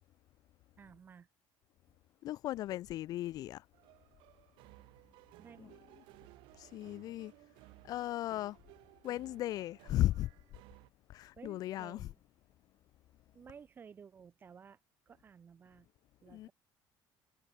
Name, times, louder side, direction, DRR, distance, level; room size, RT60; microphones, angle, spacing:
voice 1, 0.8-1.3 5.4-5.8 11.4-12.2 13.3-14.8 15.1-15.9 16.2-16.5, right 6 dB, 25° right, 7.2 m, -55 dB
voice 2, 2.2-3.6 6.6-7.3 7.8-8.6 9.0-10.3 11.1-12.0 16.3-16.5, left 14 dB, 45° left, 0.6 m, -36 dB
sound 1, 3.7-10.9, right 22 dB, 80° right, 4.3 m, -59 dB
cardioid pair, 175°, 9 cm